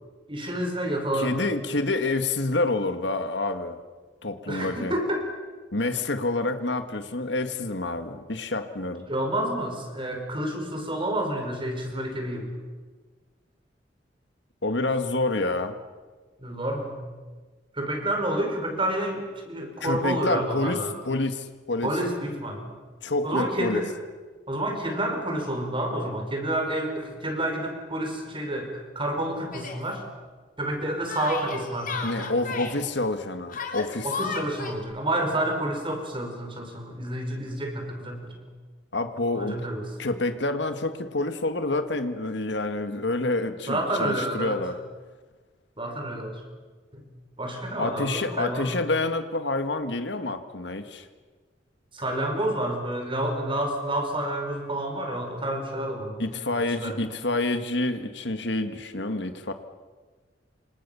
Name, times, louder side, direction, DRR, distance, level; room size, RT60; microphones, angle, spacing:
voice 1, 0.3-1.4 4.5-5.2 9.1-12.5 16.4-17.0 17.7-20.9 21.8-22.7 23.2-24.0 24.5-30.0 30.6-32.3 34.0-38.4 39.3-39.9 43.7-44.6 45.8-46.4 46.9-47.0 47.4-48.7 51.9-56.2 56.8-57.0, right 1 dB, 30° right, 3 dB, 5.5 m, -29 dB
voice 2, 1.1-3.8 4.2-4.9 5.7-9.1 14.6-15.8 19.8-21.9 23.0-23.8 32.0-34.1 38.9-39.6 40.0-44.8 47.8-51.1 56.2-59.5, left 2 dB, 70° left, 8 dB, 1.9 m, -28 dB
Yell, 29.5-29.8 31.1-32.8 33.5-34.8, left 4 dB, 50° left, 3.5 m, -33 dB
28.0 x 26.0 x 7.1 m, 1.4 s
head